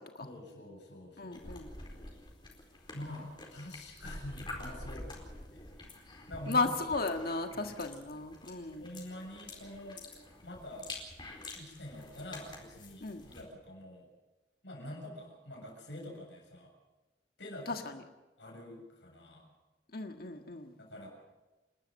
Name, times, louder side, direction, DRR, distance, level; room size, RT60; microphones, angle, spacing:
voice 1, 0.2-1.4 2.9-6.7 7.5-7.8 8.8-10.0 10.4-10.9 11.5-14.1 14.6-16.7 17.4-17.8 18.4-19.5 20.8-21.1, left 1 dB, 80° left, 0 dB, 7.4 m, -46 dB
voice 2, 1.2-1.7 6.5-8.9 13.0-13.3 17.7-18.0 19.9-20.7, left 3 dB, 55° left, 5 dB, 1.7 m, -35 dB
sound 1, 1.3-13.4, left 2 dB, 25° left, 4.3 m, -48 dB
28.5 x 12.5 x 7.7 m, 1.1 s
head